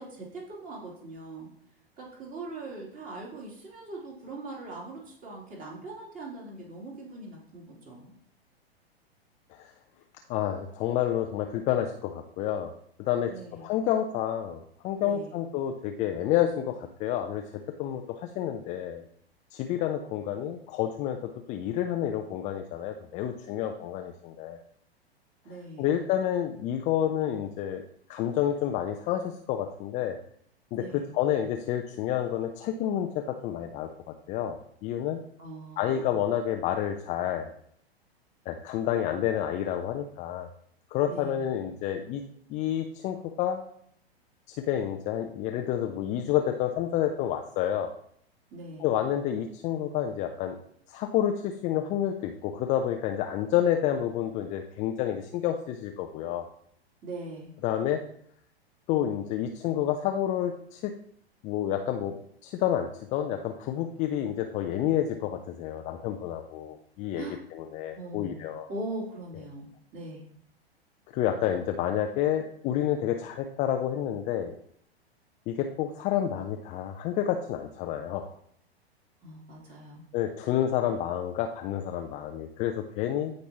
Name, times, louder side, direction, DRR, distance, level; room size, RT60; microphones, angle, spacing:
voice 1, 0.0-1.5 2.0-8.1 13.2-13.7 15.0-15.4 25.4-25.9 30.7-31.1 35.4-36.1 41.1-41.4 48.5-48.9 57.0-57.5 67.1-67.4 67.9-70.3 79.2-80.1, right 2 dB, 25° right, -2 dB, 3.3 m, -41 dB
voice 2, 10.3-12.7 13.0-19.0 19.5-24.6 25.8-27.8 28.1-30.2 30.7-33.9 34.3-35.2 35.8-37.5 38.5-40.5 40.9-42.2 42.5-43.6 44.5-47.9 48.8-50.6 50.9-56.4 57.6-58.0 58.9-60.9 61.4-62.2 62.4-67.2 67.5-68.7 71.1-74.5 75.5-78.3 80.1-83.3, left 10 dB, 25° left, 5 dB, 0.5 m, -29 dB
15.0 x 5.2 x 3.0 m, 0.65 s
figure-of-eight pair, 105°, 32 cm